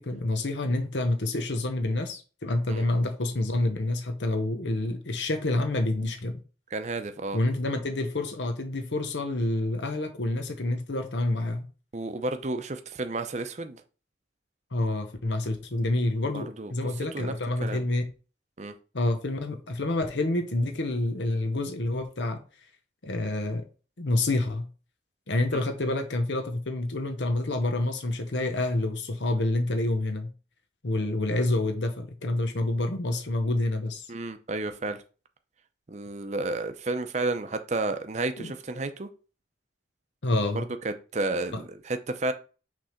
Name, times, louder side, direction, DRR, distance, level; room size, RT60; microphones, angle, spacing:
voice 1, 0.0-6.4 7.3-11.7 14.7-18.1 18.9-22.4 23.0-23.6 24.0-24.7 25.3-30.3 30.8-34.1 38.4-38.5 40.2-40.7 41.5-41.6, left 2 dB, 90° left, 1.0 m, -28 dB
voice 2, 6.7-7.4 11.9-13.8 16.3-16.7 17.1-17.3 17.6-17.8 18.6-18.7 25.5-25.6 34.1-35.0 35.9-39.1 40.5-42.3, right 2 dB, 40° right, 0.6 m, -31 dB
6.3 x 3.4 x 5.7 m
head